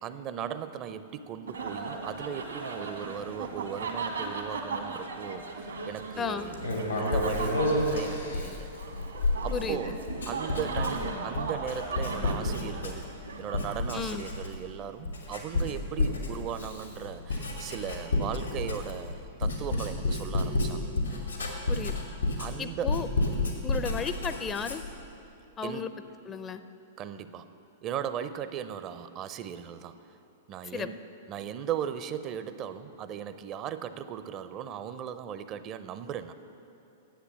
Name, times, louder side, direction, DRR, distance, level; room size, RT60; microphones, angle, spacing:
voice 1, 0.0-6.6 6.9-8.7 9.4-10.0 10.3-13.1 13.4-20.9 22.4-22.9 25.6-25.9 27.0-27.5 27.8-29.9 30.5-31.0 31.3-36.3, right 9 dB, 35° right, 12 dB, 0.5 m, -37 dB
sound 1, 1.5-14.4, right 4 dB, 80° right, 1.4 m, -37 dB
voice 2, 6.2-6.5 9.5-9.8 13.9-14.3 21.7-22.0 22.6-23.1 23.6-24.8 25.6-25.9 26.2-26.6 30.7-30.9, left 6 dB, 20° left, 11 dB, 0.5 m, -33 dB
Writing, 6.5-13.2 13.5-14.7 15.0-25.0, left 2 dB, 90° left, 2.1 m, -30 dB
10.5 x 8.1 x 7.5 m, 2.8 s
figure-of-eight pair, 105°, 0 cm